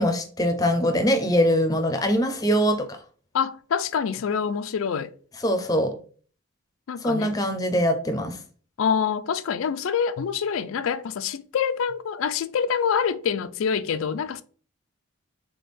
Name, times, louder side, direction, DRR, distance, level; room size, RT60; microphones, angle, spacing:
voice 1, 0.0-3.0 5.4-5.9 7.0-8.4, equal, 15° left, 0.5 m, -22 dB
voice 2, 3.3-5.1 6.9-7.3 8.8-14.4, left 7 dB, 75° left, 0.4 m, -26 dB
3.6 x 3.4 x 4.1 m
head